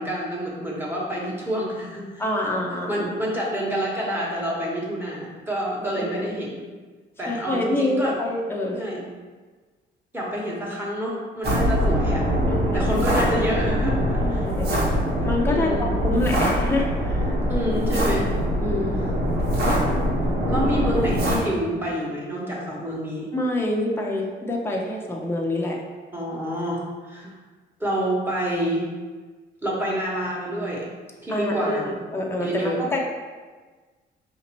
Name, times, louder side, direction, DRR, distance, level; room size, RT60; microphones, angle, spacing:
voice 1, 0.0-2.2 2.7-6.7 7.2-8.1 8.7-9.1 10.1-12.2 12.7-14.5 15.5-15.9 17.5-18.3 20.5-23.3 26.1-26.8 27.1-27.3 27.8-28.9 29.6-30.8 31.2-32.0 32.4-32.8, equal, 10° right, -4 dB, 1.2 m, -28 dB
voice 2, 2.2-3.1 5.9-6.3 7.3-8.8 11.5-11.6 12.5-12.9 14.2-14.9 15.2-17.4 18.6-19.1 23.3-25.8 31.3-33.0, left 1 dB, 10° left, -1 dB, 0.7 m, -26 dB
sound 1, 11.4-21.4, equal, 55° right, 1.3 m, -23 dB
5.0 x 2.8 x 3.0 m, 1.4 s
cardioid pair, 90°, 20 cm